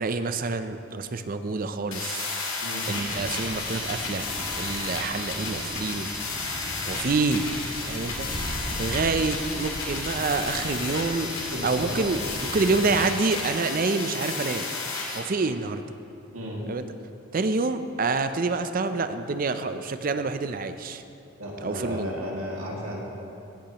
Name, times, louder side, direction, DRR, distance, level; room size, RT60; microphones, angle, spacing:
voice 1, 0.0-2.3 2.9-4.3 4.6-6.1 6.8-7.5 7.8-8.3 8.8-11.3 11.6-12.2 12.5-14.6 15.1-15.8 16.7-16.8 17.3-21.0 21.6-22.1, right 3 dB, 40° right, 10 dB, 0.4 m, -27 dB
sound 1, 1.9-15.2, left 3 dB, 80° left, 1.9 m, -32 dB
sound 2, 2.9-13.0, equal, 65° right, 1.9 m, -38 dB
voice 2, 11.5-12.0 16.3-16.6 21.4-23.0, equal, 80° right, -3 dB, 2.0 m, -33 dB
16.0 x 8.7 x 2.9 m, 2.9 s
head